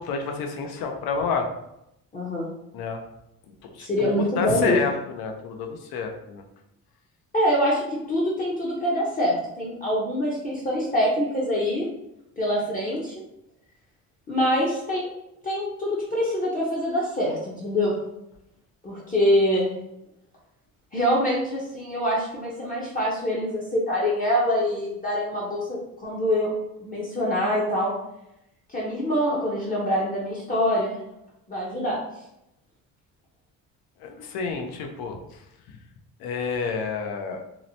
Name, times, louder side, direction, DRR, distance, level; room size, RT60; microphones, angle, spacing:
voice 1, 0.0-1.5 2.7-3.0 3.6-6.4 34.0-35.2 36.2-37.4, left 5 dB, 80° left, 4 dB, 0.6 m, -29 dB
voice 2, 2.1-2.5 3.8-4.8 7.3-11.9 12.4-13.2 14.3-15.1 15.4-17.9 18.8-19.7 20.9-26.5 26.8-27.9 28.7-31.0 31.5-32.0, equal, 25° left, -5 dB, 0.5 m, -25 dB
2.8 x 2.0 x 2.6 m, 0.83 s
cardioid pair, 125°, 36 cm